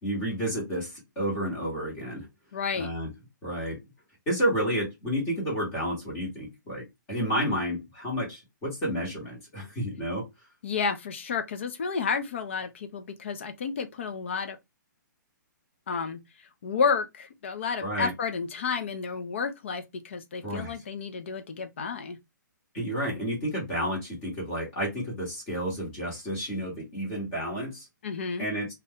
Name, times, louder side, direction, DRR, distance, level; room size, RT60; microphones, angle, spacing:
voice 1, 0.0-2.3 2.8-3.1 3.4-3.8 4.3-10.3 17.8-18.1 20.4-20.8 22.7-27.9 28.4-28.7, equal, 15° left, 1.1 m, -31 dB
voice 2, 2.5-2.9 10.6-14.6 15.9-16.2 16.6-22.2 28.0-28.5, left 5 dB, 35° left, 0.5 m, -31 dB
2.4 x 2.2 x 3.5 m
hypercardioid pair, 180°, 11 cm